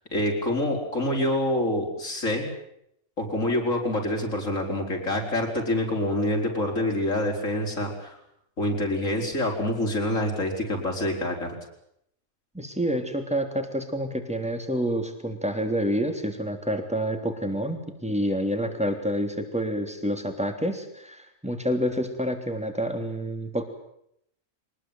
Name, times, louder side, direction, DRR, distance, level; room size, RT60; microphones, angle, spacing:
voice 1, 0.1-2.5 3.2-8.2 8.6-11.5, left 1 dB, 70° left, 2 dB, 5.4 m, -26 dB
voice 2, 12.5-23.6, equal, 5° right, 5 dB, 3.3 m, -28 dB
24.0 x 20.5 x 9.2 m, 0.75 s
omnidirectional pair, 1.4 m